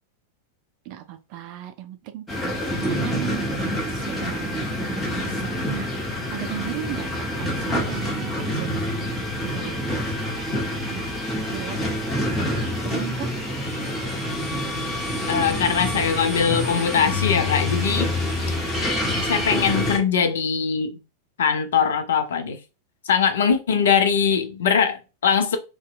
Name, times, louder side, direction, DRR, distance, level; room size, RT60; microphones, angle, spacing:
voice 1, 0.9-3.5 3.9-10.1 10.5-11.0 11.5-11.8 12.8-13.4, right 12 dB, 45° right, 0.4 m, -36 dB
sound 1, 2.3-20.0, left 1 dB, 10° left, 0.8 m, -27 dB
voice 2, 15.3-18.1 19.2-21.0 21.4-22.6 23.0-25.6, left 7 dB, 65° left, 0.4 m, -21 dB
2.6 x 2.1 x 2.3 m
figure-of-eight pair, 90°, 0 cm